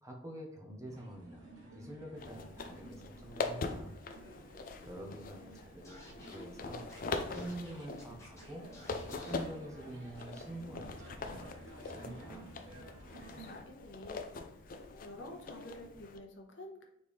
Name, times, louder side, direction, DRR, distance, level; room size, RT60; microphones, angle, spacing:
voice 1, 0.0-3.9 4.8-6.8 7.3-8.7 9.1-11.5 11.8-12.5, right 1 dB, 15° right, 1 dB, 0.7 m, -47 dB
sound 1, 0.8-13.6, right 2 dB, 75° right, 1.3 m, -54 dB
sound 2, 2.2-16.2, left 3 dB, 45° left, 0.4 m, -43 dB
Scratching (performance technique), 5.8-6.4 6.9-7.0 7.3-8.4 8.7-9.4, left 1 dB, 15° left, 0.8 m, -55 dB
voice 2, 13.3-14.7 15.0-16.8, left 1 dB, 65° left, 3 dB, 0.8 m, -50 dB
4.3 x 3.2 x 3.5 m, 0.81 s
head